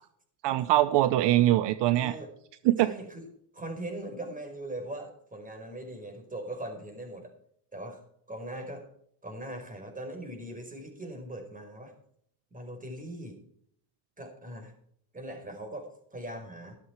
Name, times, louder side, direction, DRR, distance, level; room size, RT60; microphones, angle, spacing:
voice 1, 0.4-2.2 2.6-2.9, right 14 dB, 60° right, 14 dB, 0.8 m, -23 dB
voice 2, 1.9-2.3 2.8-3.3 3.5-7.3 7.7-8.0 8.3-8.9 9.2-11.9 12.5-13.4 14.2-14.7 15.1-16.8, right 1 dB, 15° right, 4 dB, 4.9 m, -40 dB
13.5 x 12.5 x 4.7 m, 0.68 s
cardioid pair, 110°, 47 cm